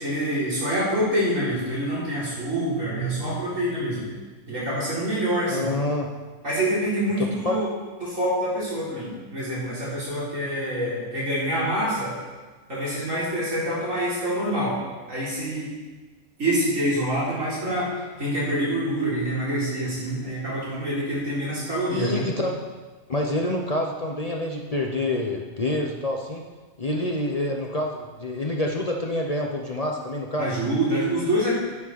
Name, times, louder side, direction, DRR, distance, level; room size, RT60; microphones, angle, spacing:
voice 1, 0.0-4.1 4.5-5.7 6.4-7.7 8.0-12.1 12.7-14.8 15.1-15.7 16.4-17.9 18.2-22.3 30.4-31.5, right 1 dB, 75° right, -8 dB, 4.2 m, -26 dB
voice 2, 5.5-6.1 7.2-7.6 21.9-22.6 23.1-26.4 26.8-30.5, left 1 dB, 35° left, 0 dB, 0.8 m, -27 dB
11.0 x 9.8 x 4.1 m, 1.3 s
omnidirectional pair, 1.4 m